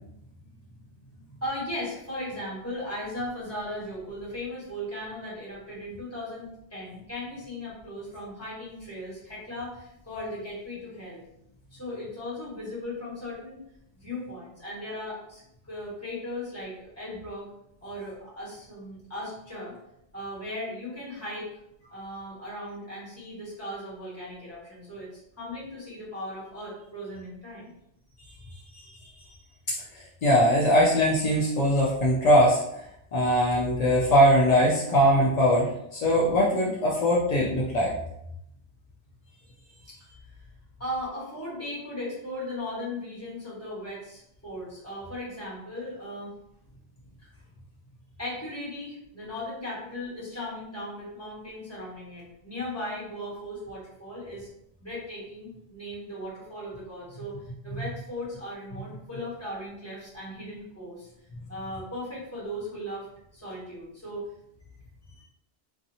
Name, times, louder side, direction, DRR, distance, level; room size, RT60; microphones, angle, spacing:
voice 1, 1.4-11.2 11.7-13.6 14.0-17.5 17.8-19.8 20.1-21.5 21.9-25.1 25.4-27.7 39.9-40.0 40.8-46.3 47.2-47.3 48.2-54.5 54.8-57.4 57.6-61.1 61.5-63.1 63.3-64.2, left 1 dB, 15° left, -8 dB, 1.2 m, -37 dB
voice 2, 30.2-32.6 33.1-37.9, equal, 60° left, -5 dB, 0.4 m, -21 dB
2.7 x 2.3 x 2.6 m, 0.78 s
omnidirectional pair, 1.2 m